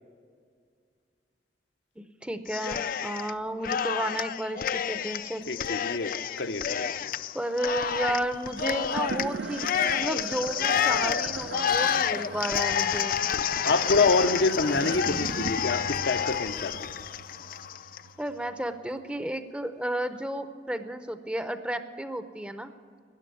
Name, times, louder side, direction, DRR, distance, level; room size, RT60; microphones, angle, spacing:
voice 1, 2.0-5.4 7.3-13.2 18.2-22.7, right 1 dB, 5° right, 10 dB, 0.6 m, -32 dB
Cheering, 2.5-3.3 3.6-18.0, left 8 dB, 50° left, 0.4 m, -29 dB
voice 2, 5.5-7.1 13.6-16.9, left 3 dB, 75° left, 8 dB, 0.7 m, -27 dB
sound 1, 8.5-19.0, right 4 dB, 85° right, 0.6 m, -39 dB
13.0 x 10.0 x 9.2 m, 2.2 s
head